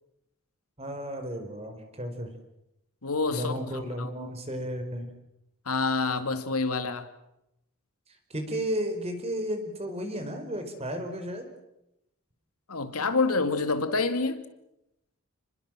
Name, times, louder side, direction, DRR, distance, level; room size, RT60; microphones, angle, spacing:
voice 1, 0.8-2.3 3.3-5.1 8.3-11.4, equal, 30° right, 4.8 m, -33 dB
voice 2, 3.0-4.3 5.7-7.1 12.7-14.4, left 3 dB, 85° left, 2.4 m, -28 dB
30.0 x 21.0 x 7.6 m
head